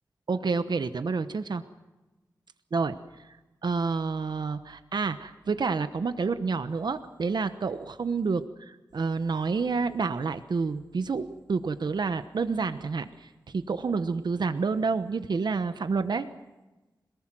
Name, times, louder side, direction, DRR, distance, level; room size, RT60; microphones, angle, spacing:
voice 1, 0.3-1.6 2.7-3.0 3.6-16.3, right 4 dB, 75° right, 10 dB, 1.1 m, -29 dB
26.5 x 19.0 x 7.7 m, 1.1 s
wide cardioid pair, 110°, 7 cm